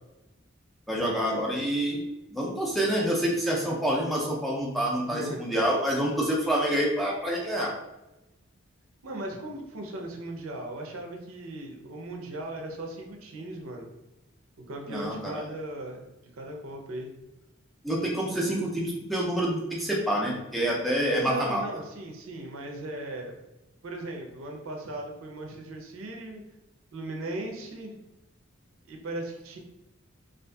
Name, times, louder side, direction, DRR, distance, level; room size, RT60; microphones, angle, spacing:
voice 1, 0.9-2.0 2.3-7.7 14.9-15.4 17.8-21.6, equal, ahead, -4 dB, 0.4 m, -27 dB
voice 2, 5.1-5.5 9.0-13.9 14.7-16.0 16.3-17.1 21.2-23.3 23.8-26.4 26.9-28.0 28.9-29.6, right 1 dB, 75° right, 2 dB, 0.5 m, -37 dB
2.6 x 2.4 x 2.2 m, 0.96 s
head